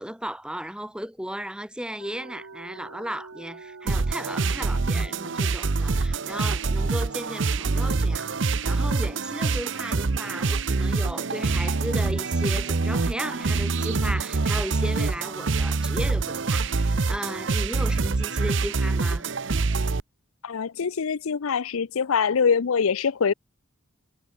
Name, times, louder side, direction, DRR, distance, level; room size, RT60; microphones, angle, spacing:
voice 1, 0.0-19.3, equal, 5° right, 1.8 m, -35 dB
sound 1, 2.0-14.5 14.8-14.9 15.3-18.0, right 3 dB, 85° right, 1.1 m, -43 dB
sound 2, 3.9-20.0, right 3 dB, 60° right, 0.8 m, -25 dB
voice 2, 20.4-23.3, left 6 dB, 90° left, 0.6 m, -24 dB
head